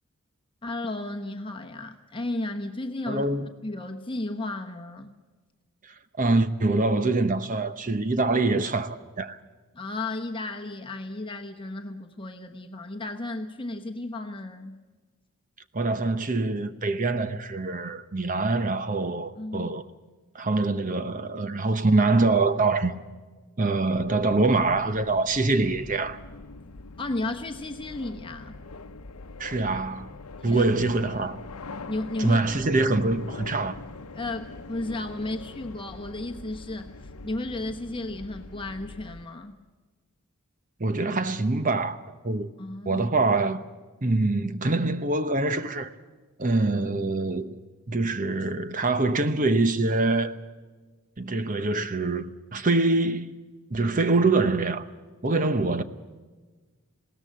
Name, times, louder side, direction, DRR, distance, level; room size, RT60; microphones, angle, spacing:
voice 1, 0.6-3.2 3.6-5.1 9.7-14.8 19.4-19.7 27.0-28.6 30.4-30.7 31.9-32.4 34.1-39.6 42.6-43.1, left 2 dB, 25° left, 1.1 m, -34 dB
voice 2, 3.1-3.5 6.2-9.4 15.7-19.8 20.3-22.9 23.6-26.2 29.4-30.1 30.4-31.4 32.2-33.7 40.8-42.0 42.2-42.5 42.9-43.6 44.0-45.9 46.4-47.6 47.9-50.3 51.2-53.3 53.7-54.9 55.2-55.8, right 3 dB, 35° right, 0.9 m, -24 dB
sound 1, 23.9-39.3, left 3 dB, 90° left, 0.8 m, -43 dB
20.5 x 18.0 x 7.5 m
head